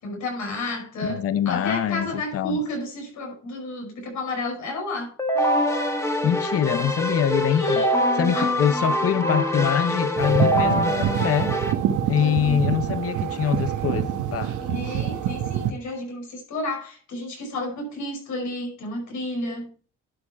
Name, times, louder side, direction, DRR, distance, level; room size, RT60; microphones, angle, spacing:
voice 1, 0.0-5.1 7.5-7.9 8.3-8.5 12.2-12.6 14.6-19.7, left 1 dB, 75° left, 5.3 m, -31 dB
voice 2, 1.0-2.6 6.2-7.9 8.2-11.6 12.0-14.8, left 9 dB, 50° left, 0.8 m, -24 dB
Keyboard (musical), 5.2-11.7, equal, 10° left, 1.5 m, -24 dB
sound 1, 10.2-15.7, right 10 dB, 80° right, 1.3 m, -26 dB
11.5 x 6.3 x 4.7 m
cardioid pair, 90°, 30 cm